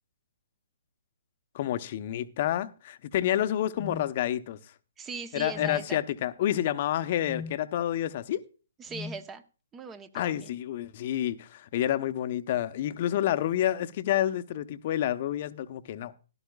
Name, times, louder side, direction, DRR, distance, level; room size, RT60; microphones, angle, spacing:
voice 1, 1.5-4.6 5.3-8.4 10.1-16.1, left 12 dB, 45° left, 0.9 m, -29 dB
sound 1, 3.8-4.1 5.5-5.8 7.2-7.6 8.9-9.2, left 5 dB, ahead, 1.5 m, -38 dB
voice 2, 5.0-6.0 8.8-9.4 9.7-10.5, right 4 dB, 15° right, 0.9 m, -39 dB
16.0 x 11.5 x 2.4 m
figure-of-eight pair, 130°, 0 cm